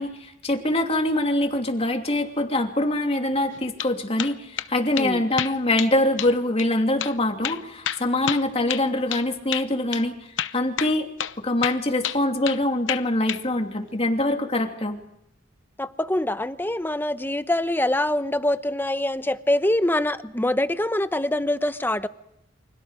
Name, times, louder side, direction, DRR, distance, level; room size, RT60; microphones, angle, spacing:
voice 1, 0.0-10.1 10.5-11.1 11.4-15.0, left 1 dB, 30° left, 4 dB, 3.0 m, -24 dB
sound 1, 3.5-3.9 4.2-4.7 5.0-5.1 5.4-5.9 6.2-6.3 6.6-6.7 7.0-7.2 7.4-9.3 9.5-9.7 9.9-10.0 10.4-10.9 11.2-11.4 11.6-12.6 12.9-13.4, left 10 dB, 65° left, 0.9 m, -29 dB
voice 2, 4.9-5.2 15.8-22.1, left 1 dB, 10° left, 12 dB, 0.9 m, -24 dB
29.5 x 25.5 x 5.1 m, 0.80 s
head